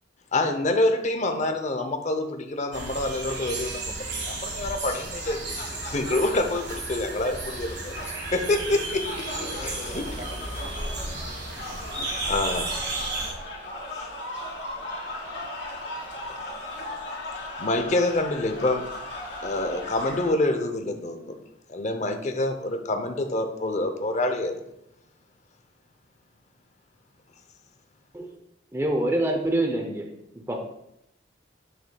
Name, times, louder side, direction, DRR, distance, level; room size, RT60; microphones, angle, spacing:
voice 1, 0.3-9.3 9.6-10.1 12.0-12.7 13.9-14.1 16.3-16.4 17.6-18.9 19.4-21.4 21.7-24.5, left 2 dB, 40° left, 6 dB, 0.6 m, -27 dB
sound 1, 2.7-13.3, right 2 dB, 60° right, 1.5 m, -34 dB
sound 2, 5.1-20.3, left 1 dB, 65° left, 2.6 m, -37 dB
voice 2, 9.2-11.5, left 1 dB, 40° right, -3 dB, 2.5 m, -42 dB
voice 3, 28.7-30.1 30.3-30.7, right 1 dB, 15° right, 3 dB, 0.6 m, -26 dB
8.0 x 6.2 x 2.3 m, 0.82 s
head